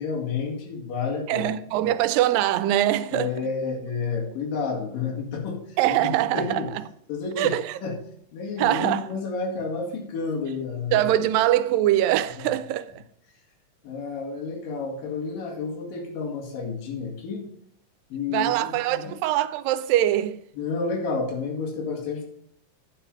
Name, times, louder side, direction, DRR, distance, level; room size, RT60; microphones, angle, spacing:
voice 1, 0.0-1.5 1.8-1.9 3.1-6.7 7.1-7.6 7.8-8.0 8.3-11.1 13.8-17.5 18.1-19.1 20.5-22.2, left 4 dB, 75° left, 3.8 m, -30 dB
voice 2, 1.3-3.3 5.8-6.6 7.4-7.8 8.6-9.1 10.9-13.0 18.3-20.4, right 13 dB, 90° right, 2.3 m, -23 dB
9.7 x 6.0 x 5.3 m
omnidirectional pair, 3.9 m